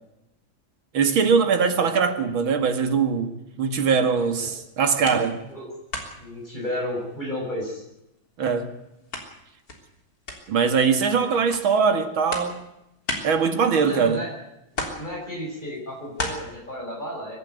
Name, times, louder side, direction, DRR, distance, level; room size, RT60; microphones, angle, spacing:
voice 1, 0.9-5.4 8.4-8.7 10.5-12.6 13.2-14.2, right 6 dB, 85° right, 2.8 m, -22 dB
sound 1, 4.5-5.6 5.9-7.5 7.8-14.3 14.7-16.3, left 2 dB, 45° left, 4.1 m, -36 dB
voice 2, 6.2-7.8 13.8-14.3 14.7-17.4, left 1 dB, 20° left, 6.8 m, -32 dB
23.5 x 11.5 x 9.4 m
omnidirectional pair, 2.2 m